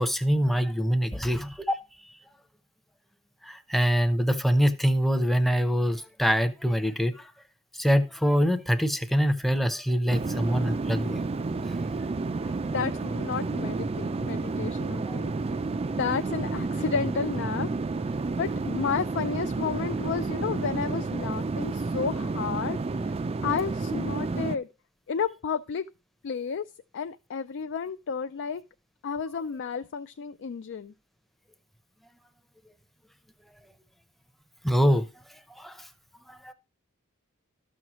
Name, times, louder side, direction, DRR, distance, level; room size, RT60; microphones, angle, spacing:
voice 1, 0.0-1.8 3.4-7.3 7.7-11.2 11.6-11.7 15.1-15.2 34.6-35.1 35.6-35.9 36.3-36.5, equal, ahead, 0.7 m, -24 dB
sound 1, 10.1-24.6, right 3 dB, 25° right, 0.4 m, -30 dB
voice 2, 12.4-15.3 16.0-17.7 18.4-23.1 23.4-24.7 25.1-25.9 26.2-28.6 29.0-30.9, left 6 dB, 55° left, 0.4 m, -32 dB
13.0 x 6.3 x 3.0 m
head